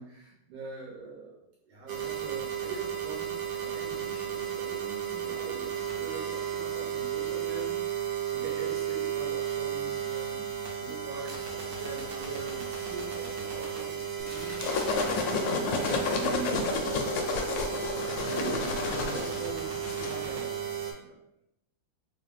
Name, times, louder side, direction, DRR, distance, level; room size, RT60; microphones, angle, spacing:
voice 1, 0.0-16.5 18.2-21.2, right 3 dB, 85° right, -4 dB, 1.7 m, -42 dB
sound 1, 1.9-20.9, right 9 dB, 60° right, 1.1 m, -34 dB
sound 2, 14.3-20.1, left 4 dB, 75° left, 1.2 m, -30 dB
Crushing, 14.3-16.5 16.8-16.9, right 1 dB, 45° right, 0.7 m, -45 dB
3.7 x 2.4 x 3.4 m, 0.80 s
omnidirectional pair, 2.3 m